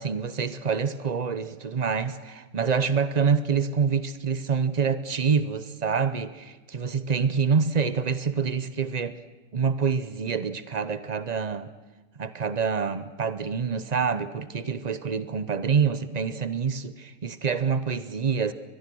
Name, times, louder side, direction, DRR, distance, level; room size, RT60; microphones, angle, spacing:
voice 1, 0.0-9.2 9.5-11.7 12.2-18.5, right 6 dB, 40° right, 13 dB, 0.6 m, -26 dB
23.5 x 21.0 x 6.2 m, 1.2 s
omnidirectional pair, 1.7 m